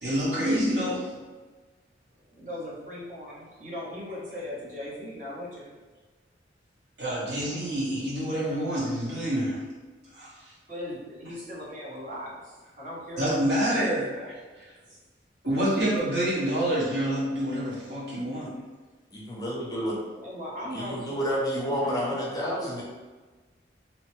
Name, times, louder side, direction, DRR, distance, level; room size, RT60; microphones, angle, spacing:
voice 1, 0.0-1.1 7.0-9.6 10.1-10.5 13.2-14.0 15.4-18.6, right 1 dB, 75° right, -9 dB, 1.3 m, -27 dB
voice 2, 2.3-5.8 10.7-14.3 14.8-15.0 20.0-21.2 21.8-22.1, left 1 dB, 45° right, -6 dB, 0.8 m, -39 dB
voice 3, 19.1-20.0 20.7-22.8, equal, 20° left, -4 dB, 0.5 m, -29 dB
2.9 x 2.1 x 3.0 m, 1.3 s
head